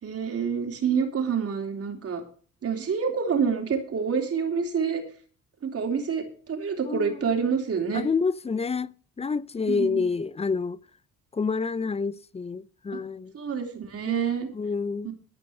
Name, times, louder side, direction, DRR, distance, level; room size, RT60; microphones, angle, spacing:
voice 1, 0.0-2.2 2.6-5.0 5.6-8.1 9.7-10.1 12.9-13.0 13.3-14.5 15.0-15.1, right 6 dB, 50° right, 3.3 m, -27 dB
voice 2, 6.9-7.3 7.9-8.9 9.2-10.8 11.3-13.3 14.1-15.1, left 5 dB, 20° left, 0.5 m, -28 dB
13.5 x 5.3 x 7.7 m
cardioid pair, 90°, 30 cm